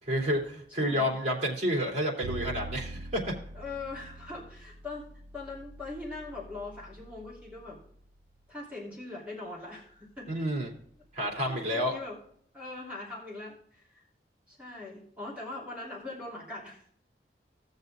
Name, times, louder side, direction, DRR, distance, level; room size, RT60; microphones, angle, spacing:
voice 1, 0.0-3.3 10.3-10.7 11.1-11.9, equal, 40° right, -1 dB, 3.0 m, -29 dB
voice 2, 0.8-1.2 3.5-5.1 5.3-7.8 8.5-10.4 11.2-12.2 12.5-14.0 14.5-16.8, left 2 dB, 10° right, -6 dB, 3.0 m, -41 dB
Bowed string instrument, 2.2-8.4, right 2 dB, 70° right, 0.8 m, -44 dB
18.0 x 6.6 x 2.4 m, 0.65 s
head